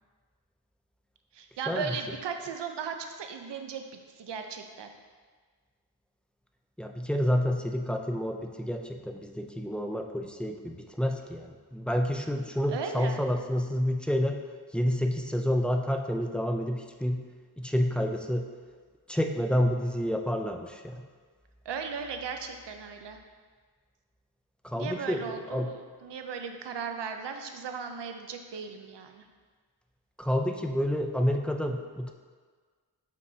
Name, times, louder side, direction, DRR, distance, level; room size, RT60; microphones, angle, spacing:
voice 1, 1.3-3.8 4.2-4.9 12.7-13.2 21.7-23.2 24.8-29.2, right 6 dB, 80° right, 5 dB, 0.7 m, -37 dB
voice 2, 6.8-14.4 14.7-17.2 17.6-18.5 19.1-21.0 24.6-25.7 30.2-32.1, equal, 5° left, 3 dB, 0.3 m, -29 dB
8.0 x 5.5 x 2.7 m, 1.5 s
wide cardioid pair, 135°, 41 cm